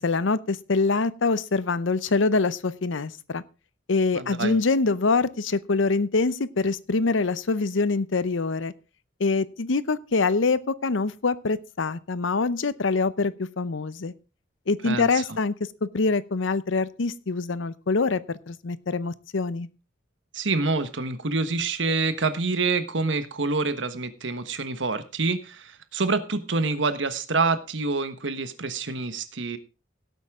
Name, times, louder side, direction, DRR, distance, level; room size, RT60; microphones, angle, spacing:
voice 1, 0.0-3.4 3.9-8.7 9.2-14.1 14.7-15.5 15.8-19.7, left 3 dB, 90° left, 17 dB, 0.7 m, -25 dB
voice 2, 4.1-4.6 14.8-15.1 20.3-29.6, right 3 dB, 75° right, 11 dB, 1.3 m, -27 dB
17.0 x 8.4 x 3.7 m, 0.31 s
head